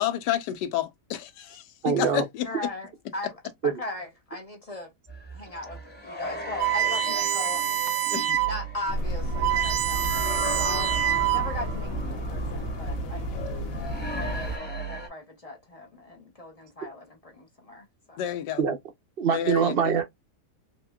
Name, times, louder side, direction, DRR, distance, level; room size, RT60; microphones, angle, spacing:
voice 1, 0.0-2.5 8.1-8.4 18.2-18.6 19.3-19.7, left 11 dB, 80° left, 1.3 m, -29 dB
voice 2, 1.8-2.2 3.6-3.7 18.6-18.8 19.2-20.0, right 7 dB, 65° right, 0.5 m, -23 dB
voice 3, 2.4-4.9 5.3-7.7 8.5-10.9 11.3-13.4 14.1-18.2, left 2 dB, 40° left, 0.5 m, -38 dB
sound 1, 5.1-15.1, equal, 5° left, 1.0 m, -37 dB
sound 2, 6.6-8.6 9.0-9.1 9.3-11.7, right 12 dB, 85° right, 1.3 m, -26 dB
sound 3, 8.9-14.6, right 1 dB, 60° left, 1.2 m, -32 dB
4.1 x 3.0 x 2.3 m
omnidirectional pair, 1.8 m